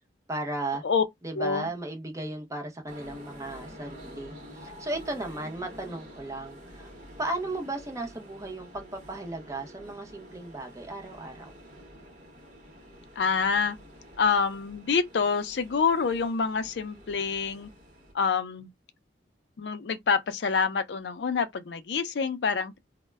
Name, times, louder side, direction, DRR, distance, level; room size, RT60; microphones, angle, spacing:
voice 1, 0.3-0.8 1.2-6.9 7.2-11.6, right 2 dB, 20° right, 0.7 m, -35 dB
voice 2, 1.3-1.7 13.2-13.8 14.2-17.7 18.1-18.7 19.6-22.8, left 5 dB, 70° left, 0.4 m, -27 dB
sound 1, 2.9-18.1, equal, 45° right, 0.9 m, -48 dB
2.1 x 2.1 x 3.3 m
head